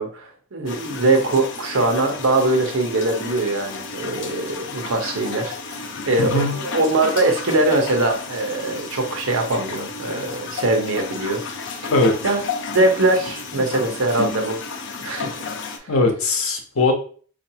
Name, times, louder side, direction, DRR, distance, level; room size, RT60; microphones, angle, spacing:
voice 1, 0.0-11.4 11.8-11.9 12.2-12.4 12.7-14.6 15.0-15.7, right 2 dB, 70° right, 3 dB, 0.8 m, -22 dB
sound 1, 0.7-15.8, left 4 dB, 60° left, 0.5 m, -33 dB
voice 2, 6.2-6.5 11.9-12.2 15.9-16.9, left 2 dB, 80° left, 3 dB, 0.8 m, -19 dB
4.5 x 2.6 x 2.8 m, 0.44 s
head